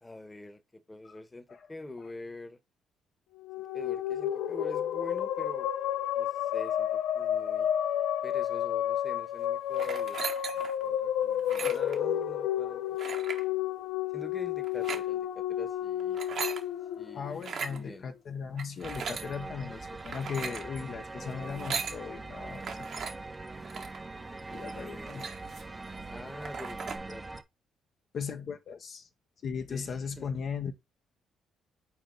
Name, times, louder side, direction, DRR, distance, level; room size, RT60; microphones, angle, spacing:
voice 1, 0.0-2.6 3.7-5.7 6.2-7.7 8.2-10.2 10.5-13.0 14.1-16.2 17.0-18.1 24.4-25.2 26.1-27.3 29.7-30.4, left 2 dB, 15° left, 1.2 m, -45 dB
sound 1, 3.4-17.8, left 11 dB, 75° left, 0.5 m, -31 dB
Lightmetal armor, 9.7-10.8 11.4-12.0 13.0-13.4 14.6-15.0 16.0-16.6 17.4-17.8 18.6-19.3 20.0-20.7 21.4-22.0 22.6-23.1 23.6-24.0 24.5-24.6 24.9-25.7 26.1-26.2 26.4-27.0, right 6 dB, 60° right, 1.2 m, -38 dB
voice 2, 17.1-22.9 24.5-25.3 28.1-29.1 29.4-30.7, left 6 dB, 55° left, 0.9 m, -37 dB
sound 2, 18.8-27.4, right 3 dB, 25° right, 0.7 m, -42 dB
5.8 x 4.2 x 3.9 m
cardioid pair, 80°, 0 cm